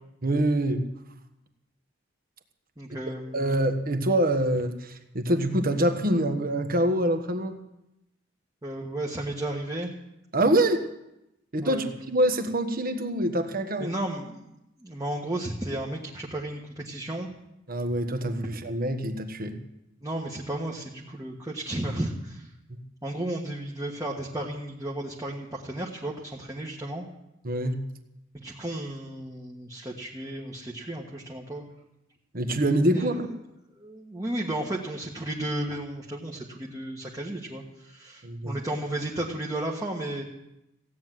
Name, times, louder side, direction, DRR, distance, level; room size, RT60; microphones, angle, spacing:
voice 1, 0.2-0.8 3.3-7.6 10.3-10.8 11.5-13.9 17.7-19.6 22.7-22.8 27.4-27.8 32.3-33.3 38.2-38.5, right 1 dB, 45° right, 7 dB, 1.4 m, -25 dB
voice 2, 2.8-3.5 8.6-9.9 11.6-11.9 13.8-14.5 14.8-17.3 20.0-22.5 23.0-27.0 28.3-31.6 32.9-33.2 33.8-40.2, right 1 dB, 15° right, -2 dB, 1.4 m, -33 dB
16.0 x 9.5 x 7.6 m, 0.88 s
head